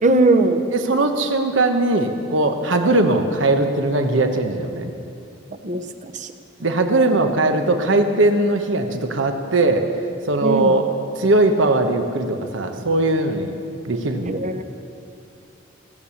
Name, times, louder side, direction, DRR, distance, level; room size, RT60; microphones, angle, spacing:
voice 1, 0.0-0.6 5.6-6.3 10.4-10.7 14.2-14.6, right 2 dB, 40° right, 8 dB, 0.8 m, -19 dB
voice 2, 0.7-4.9 6.6-9.9 10.3-10.8 11.2-13.5 13.8-14.4, right 2 dB, 80° right, 6 dB, 1.1 m, -19 dB
17.0 x 8.6 x 7.1 m, 2.6 s
head